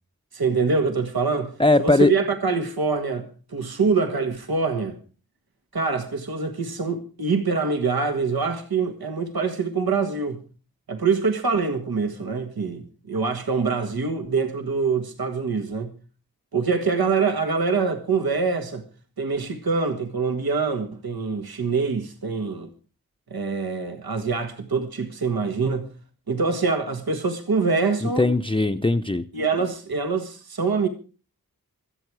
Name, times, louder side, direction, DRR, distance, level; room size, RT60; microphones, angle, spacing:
voice 1, 0.3-1.5 1.8-5.0 5.7-10.4 10.9-15.9 16.5-18.8 19.2-22.7 23.3-25.9 26.3-28.3 29.3-30.9, right 4 dB, 75° right, 1.8 m, -25 dB
voice 2, 1.6-2.1 28.0-29.2, left 2 dB, 15° left, 0.7 m, -19 dB
25.0 x 8.6 x 4.8 m
wide cardioid pair, 80°, 36 cm